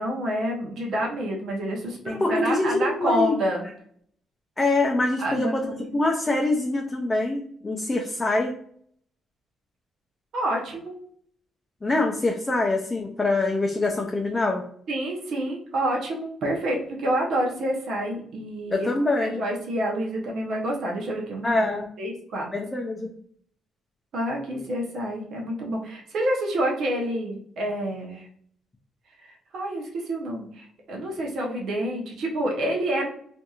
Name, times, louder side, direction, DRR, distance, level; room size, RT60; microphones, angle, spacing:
voice 1, 0.0-3.7 5.2-6.0 10.3-10.9 14.9-18.9 19.2-22.5 23.0-23.1 24.1-28.3 29.5-33.1, right 1 dB, 70° right, -1 dB, 0.7 m, -28 dB
voice 2, 2.0-3.4 4.6-8.5 11.8-14.6 18.7-19.4 21.4-21.9 22.5-23.1, left 2 dB, 20° left, 1 dB, 0.4 m, -24 dB
2.8 x 2.5 x 2.3 m, 0.62 s
cardioid pair, 90°, 0 cm